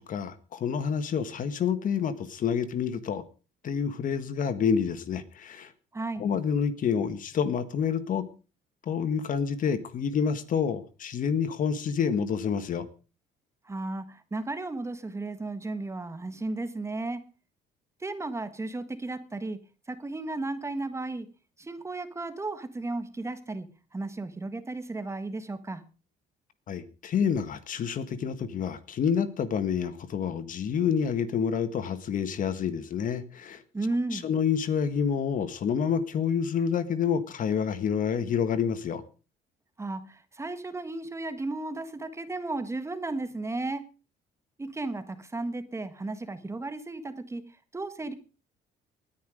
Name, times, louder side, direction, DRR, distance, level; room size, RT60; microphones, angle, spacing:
voice 1, 0.1-3.2 3.6-5.7 6.2-8.2 8.8-12.9 26.7-33.6 34.1-39.0, left 7 dB, 50° left, 13 dB, 1.6 m, -28 dB
voice 2, 5.9-6.2 13.6-17.2 18.0-19.6 19.9-21.3 21.6-25.8 33.7-34.3 39.8-43.8 44.6-48.1, right 2 dB, 15° right, 11 dB, 1.6 m, -34 dB
19.0 x 10.0 x 5.1 m, 0.35 s
cardioid pair, 110°, 17 cm